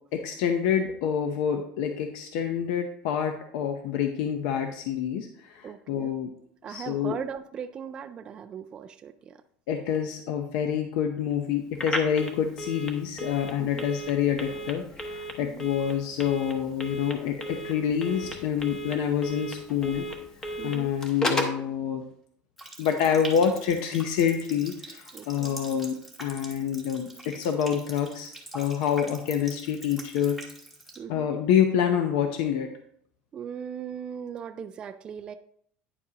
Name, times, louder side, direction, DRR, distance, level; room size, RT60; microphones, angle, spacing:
voice 1, 0.1-6.3 6.7-7.2 9.7-20.1 20.6-22.0 22.8-30.4 31.1-32.7, left 8 dB, 70° left, 5 dB, 0.8 m, -27 dB
voice 2, 5.6-6.1 6.6-9.4 13.6-13.9 15.4-15.7 20.6-20.9 25.1-25.6 31.0-31.3 33.3-35.3, right 7 dB, 25° right, 7 dB, 0.3 m, -39 dB
Telephone, 11.7-21.6, equal, 15° left, 0.9 m, -35 dB
Water tap faucet, 22.6-31.0, right 1 dB, ahead, 1.2 m, -44 dB
9.7 x 7.2 x 2.9 m, 0.64 s
cardioid pair, 170°, 4 cm